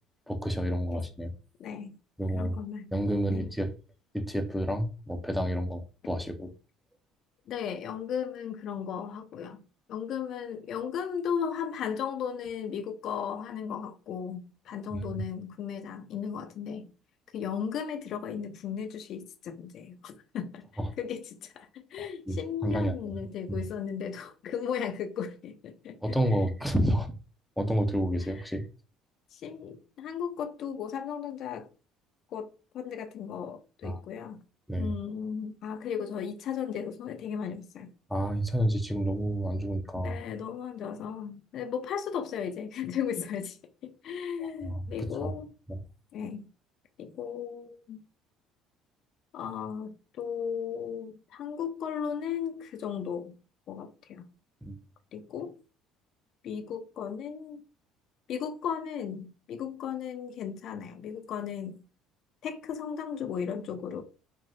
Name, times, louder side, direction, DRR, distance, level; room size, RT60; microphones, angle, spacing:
voice 1, 0.3-1.3 2.2-2.6 2.9-3.7 4.1-6.5 14.9-15.2 20.8-20.9 22.0-23.2 23.5-23.6 26.0-27.1 27.6-28.6 33.8-34.0 34.7-34.9 38.1-40.2 44.4-45.3 45.7-45.8 54.6-54.8, equal, ahead, 0.5 m, -30 dB
voice 2, 1.6-2.0 2.3-2.9 3.3-3.5 7.5-9.6 9.9-16.9 17.3-20.7 21.0-26.2 29.3-31.7 32.3-32.5 32.7-34.4 34.8-37.9 40.0-43.6 43.8-45.5 46.1-46.5 47.0-48.0 49.3-53.3 53.7-54.3 55.1-55.5 56.4-57.6 58.3-61.8 62.4-64.0, left 7 dB, 60° left, 0.4 m, -36 dB
3.3 x 2.1 x 2.6 m
hypercardioid pair, 70°, 0 cm